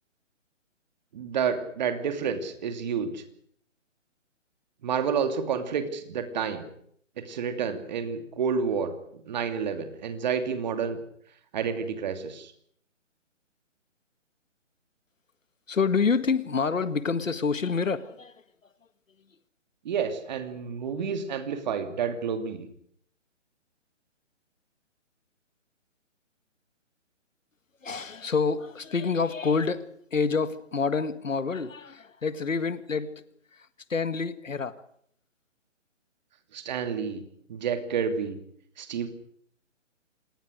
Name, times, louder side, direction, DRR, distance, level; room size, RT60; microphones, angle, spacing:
voice 1, 1.1-3.2 4.8-6.6 7.2-8.9 9.3-11.0 11.5-12.5 19.8-22.7 36.5-37.2 37.5-38.4 38.8-39.1, right 6 dB, 35° right, 8 dB, 2.8 m, -29 dB
voice 2, 15.7-18.4 27.8-33.1 33.5-34.8, left 5 dB, 85° left, 13 dB, 1.9 m, -27 dB
27.0 x 19.5 x 6.5 m, 0.66 s
hypercardioid pair, 160°, 38 cm